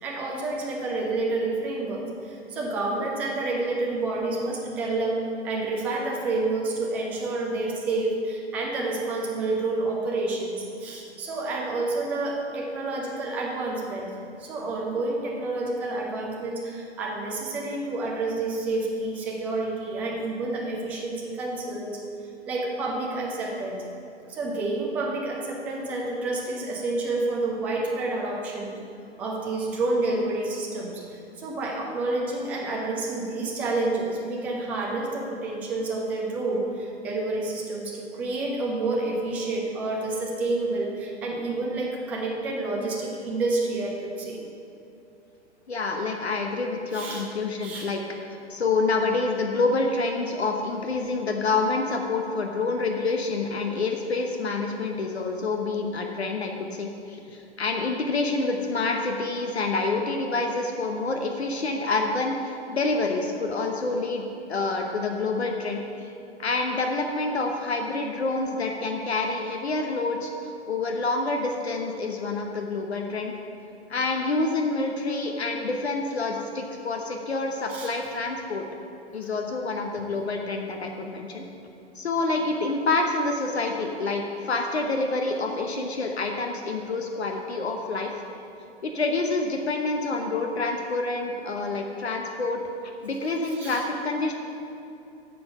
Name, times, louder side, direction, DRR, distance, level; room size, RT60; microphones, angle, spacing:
voice 1, 0.0-5.2 5.4-14.1 14.4-22.0 22.5-23.8 24.3-28.8 29.2-44.4 46.9-47.2 47.6-47.9 77.7-77.9 93.6-93.8, right 2 dB, 5° right, -1 dB, 0.3 m, -29 dB
voice 2, 45.7-48.0 48.3-64.2 64.5-65.8 66.4-70.3 70.7-73.4 73.9-78.6 79.1-81.4 81.9-88.1 88.8-92.6 93.0-94.3, left 3 dB, 70° left, 3 dB, 1.0 m, -27 dB
8.5 x 7.0 x 5.5 m, 2.8 s
figure-of-eight pair, 110°, 34 cm